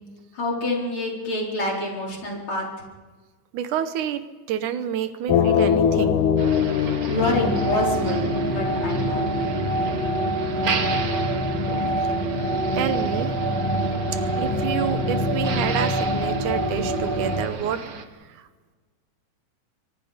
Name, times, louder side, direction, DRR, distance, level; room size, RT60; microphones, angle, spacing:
voice 1, 0.3-2.7 7.1-9.4, left 2 dB, 40° left, -2 dB, 4.9 m, -27 dB
voice 2, 3.5-6.2 12.0-12.2 12.8-13.3 14.1-18.5, right 9 dB, 80° right, 11 dB, 2.4 m, -29 dB
sound 1, 5.3-10.2, left 8 dB, 85° left, 2.6 m, -24 dB
Motor vehicle (road), 6.4-18.1, right 5 dB, 55° right, 0.9 m, -35 dB
sound 2, 7.2-17.4, right 1 dB, 15° left, 2.2 m, -25 dB
28.5 x 23.0 x 5.1 m, 1.3 s
omnidirectional pair, 3.6 m